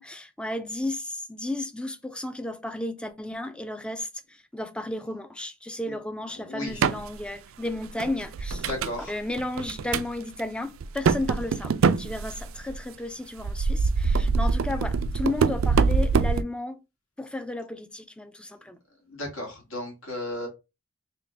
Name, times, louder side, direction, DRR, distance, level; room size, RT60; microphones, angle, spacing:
voice 1, 0.0-8.7 9.1-16.8 17.2-18.8, left 1 dB, 5° left, 0.4 m, -33 dB
voice 2, 6.5-6.8 8.7-9.1 19.1-20.5, left 1 dB, 75° left, 2.0 m, -34 dB
sound 1, 6.7-7.1 7.6-9.0 9.4-10.1 10.4-10.5 10.8-12.8 13.4-16.4, right 5 dB, 75° right, 0.4 m, -24 dB
3.9 x 2.8 x 3.3 m
head